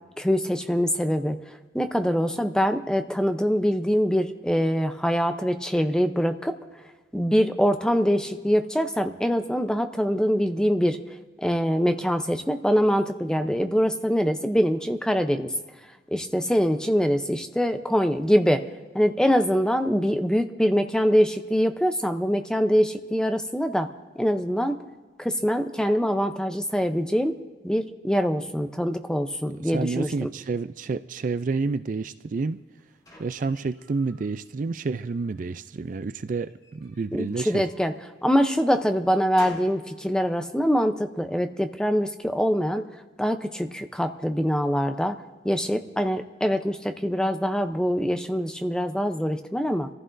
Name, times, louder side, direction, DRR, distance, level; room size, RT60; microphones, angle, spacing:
voice 1, 0.2-6.6 7.1-11.0 11.4-15.5 16.1-18.7 18.9-23.9 24.2-24.8 25.2-27.4 27.6-30.3 37.1-37.9 38.2-45.2 45.4-49.9, equal, 5° left, 7 dB, 0.6 m, -24 dB
voice 2, 29.6-32.6 33.2-37.6, right 4 dB, 45° right, 12 dB, 0.4 m, -29 dB
sound 1, 32.4-34.3 34.8-35.5 36.5-38.0 38.5-39.9, left 1 dB, 20° left, 2.4 m, -49 dB
25.5 x 15.0 x 2.6 m, 1.3 s
head